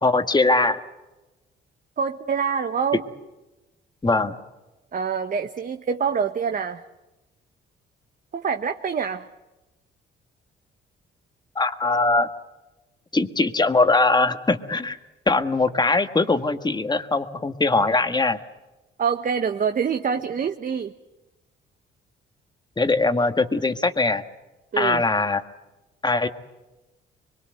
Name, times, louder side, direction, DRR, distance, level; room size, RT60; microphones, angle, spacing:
voice 1, 0.0-0.8 4.0-4.4 11.5-12.3 13.1-15.0 15.3-18.4 22.8-24.2 24.8-25.4 26.0-26.3, left 3 dB, 20° left, 9 dB, 1.6 m, -21 dB
voice 2, 2.0-3.0 4.9-6.8 8.3-9.3 19.0-20.9 24.7-25.0, right 6 dB, 45° right, 7 dB, 1.1 m, -25 dB
24.0 x 22.5 x 7.9 m, 1.1 s
cardioid pair, 90°, 20 cm